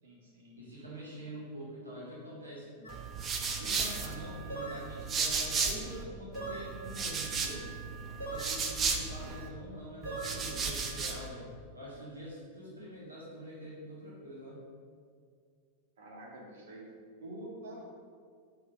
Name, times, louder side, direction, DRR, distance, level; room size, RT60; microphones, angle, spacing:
voice 1, 0.0-0.6 16.0-16.8 17.2-17.8, right 1 dB, 55° right, -4 dB, 1.7 m, -47 dB
voice 2, 0.6-2.8 3.6-7.7 8.2-11.5 11.7-14.6, equal, 80° right, -7 dB, 1.4 m, -45 dB
sound 1, 2.8-3.0 4.5-4.9 6.3-6.7 8.2-8.6 10.1-10.4, right 2 dB, 75° left, 1.1 m, -40 dB
sound 2, 2.9-6.0 6.3-9.5 10.0-11.3, right 5 dB, 25° right, 0.7 m, -35 dB
5.7 x 3.9 x 6.1 m, 2.1 s
figure-of-eight pair, 90°, 0 cm